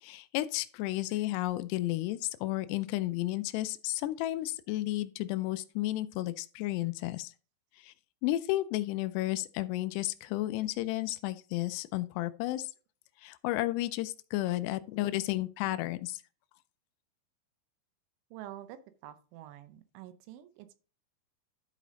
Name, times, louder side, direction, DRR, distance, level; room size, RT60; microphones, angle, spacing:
voice 1, 0.0-7.3 7.8-7.9 8.2-12.7 13.2-16.2, left 16 dB, 90° left, 2.4 m, -32 dB
voice 2, 18.3-18.8 19.0-20.7, right 13 dB, 90° right, 3.3 m, -47 dB
12.0 x 5.0 x 3.8 m
omnidirectional pair, 5.3 m